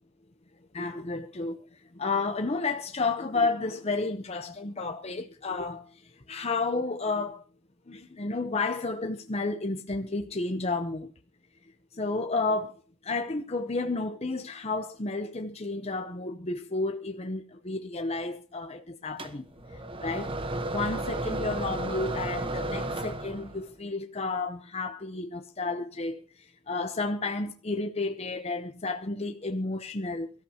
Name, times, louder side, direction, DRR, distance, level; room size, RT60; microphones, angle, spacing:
voice 1, 0.7-1.6 1.9-7.4 7.9-11.1 11.9-19.5 20.0-20.3 20.7-30.3, left 3 dB, 30° left, 0.8 m, -31 dB
sound 1, 19.2-23.7, right 2 dB, 25° right, 1.1 m, -33 dB
24.0 x 14.0 x 2.9 m
head